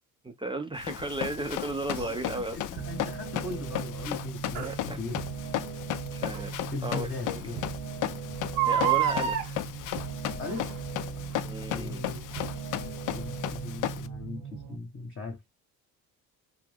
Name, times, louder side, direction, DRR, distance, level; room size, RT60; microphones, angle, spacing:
voice 1, 0.2-2.6 4.6-5.0 6.1-7.6 8.7-9.6 11.4-12.0, right 2 dB, 10° right, 0.5 m, -35 dB
Run, 0.8-14.1, left 12 dB, 50° left, 0.5 m, -35 dB
Crying sobbing, 1.9-2.1 4.6-4.7 6.3-6.4 7.0-7.1 7.3-7.4 8.4-9.5 10.4-10.8 11.3-11.4, right 10 dB, 75° right, 0.9 m, -27 dB
voice 2, 2.0-5.2 6.7-7.6 10.4-10.7 11.1-11.4 11.7-12.2 12.7-15.4, left 3 dB, 30° left, 1.0 m, -39 dB
sound 1, 2.8-14.8, right 7 dB, 55° right, 0.7 m, -39 dB
2.6 x 2.4 x 3.4 m
hypercardioid pair, 65°, 42 cm